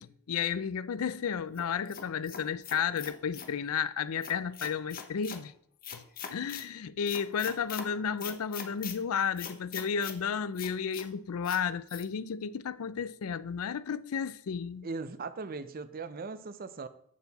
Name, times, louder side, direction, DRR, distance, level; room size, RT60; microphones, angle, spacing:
voice 1, 0.0-5.5 5.9-14.9, left 7 dB, 70° left, 0.4 m, -33 dB
sound 1, 1.6-3.5 4.2-5.4 5.8-6.7 7.1-7.9 8.2-9.0 9.4-10.2 10.6-11.1 11.4-11.6 11.9-12.0, left 8 dB, 40° left, 0.8 m, -42 dB
voice 2, 14.8-16.9, right 4 dB, 40° right, 0.5 m, -39 dB
13.5 x 4.6 x 4.1 m
head